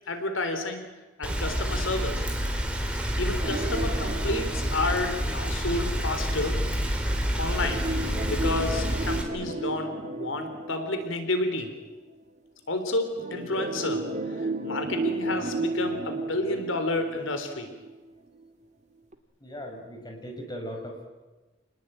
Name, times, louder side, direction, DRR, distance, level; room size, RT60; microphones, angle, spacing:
voice 1, 0.1-0.9 1.2-2.3 3.2-6.6 7.4-11.7 12.7-17.7, left 2 dB, 90° left, 7 dB, 3.8 m, -30 dB
Rain, 1.2-9.2, equal, 5° right, 3.7 m, -28 dB
sound 1, 3.4-6.1 7.6-11.9 13.2-18.1 18.4-18.5 19.1-19.2, right 2 dB, 35° right, 1.8 m, -34 dB
voice 2, 19.4-21.0, equal, 20° left, 2 dB, 5.7 m, -38 dB
29.0 x 20.0 x 9.0 m, 1.2 s
head